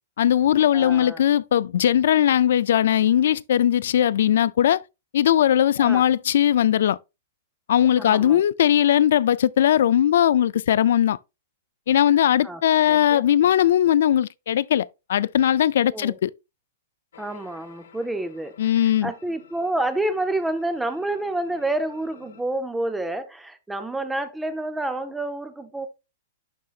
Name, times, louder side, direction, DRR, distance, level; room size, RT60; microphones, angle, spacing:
voice 1, 0.2-4.8 5.1-7.0 7.7-11.2 11.9-16.3 18.6-19.1, left 10 dB, 60° left, 0.3 m, -19 dB
voice 2, 0.7-1.2 5.8-6.0 8.0-8.4 12.4-12.6 12.9-13.2 15.9-16.2 17.2-18.5 18.8-25.9, right 2 dB, 5° right, 0.5 m, -28 dB
sound 1, 17.1-22.4, left 7 dB, 85° left, 1.2 m, -51 dB
11.5 x 3.8 x 2.4 m
supercardioid pair, 180°, 0 cm